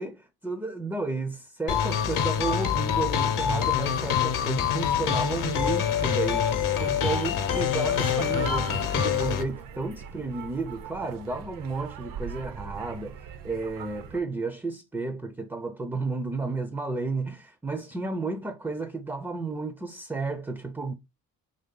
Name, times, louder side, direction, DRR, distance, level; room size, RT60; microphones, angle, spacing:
voice 1, 0.0-20.9, right 3 dB, 5° right, 0.3 m, -32 dB
sound 1, 1.7-9.4, left 8 dB, 60° left, 0.7 m, -26 dB
sound 2, 5.4-14.2, right 8 dB, 65° right, 0.6 m, -41 dB
3.0 x 2.8 x 3.6 m
cardioid pair, 105°, 36 cm